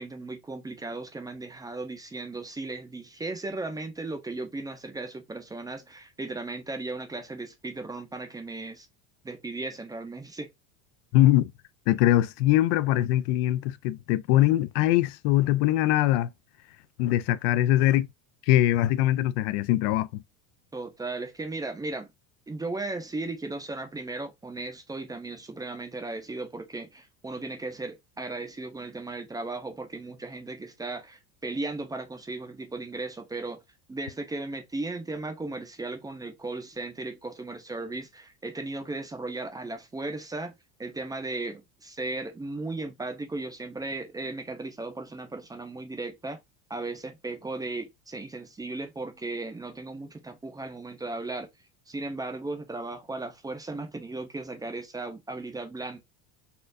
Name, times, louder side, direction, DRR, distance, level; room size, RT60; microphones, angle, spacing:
voice 1, 0.0-8.9 9.2-10.5 20.7-22.1 22.5-33.6 33.9-46.4 46.7-51.5 51.9-56.0, right 2 dB, 10° right, 0.6 m, -36 dB
voice 2, 11.1-11.5 11.9-16.3 17.0-18.1 18.5-20.2, left 14 dB, 70° left, 0.5 m, -22 dB
4.3 x 2.4 x 2.5 m
cardioid pair, 135°, 37 cm